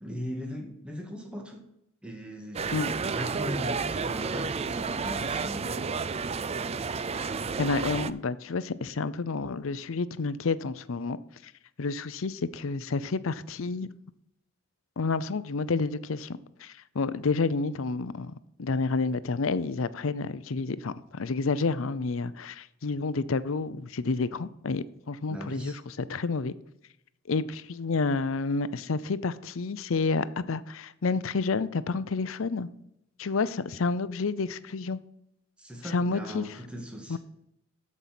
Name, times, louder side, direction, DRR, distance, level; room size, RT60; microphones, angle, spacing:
voice 1, 0.0-1.6 2.0-2.7 3.0-5.9 25.3-25.8 35.6-37.2, equal, 5° right, 1.8 m, -38 dB
sound 1, 2.5-8.1, right 5 dB, 30° right, 0.4 m, -31 dB
voice 2, 7.6-11.2 11.4-11.5 11.8-13.9 15.0-18.3 18.6-26.5 27.3-32.7 33.2-35.0 35.8-36.4 37.1-37.2, left 4 dB, 65° left, 0.6 m, -29 dB
13.5 x 5.5 x 5.9 m
head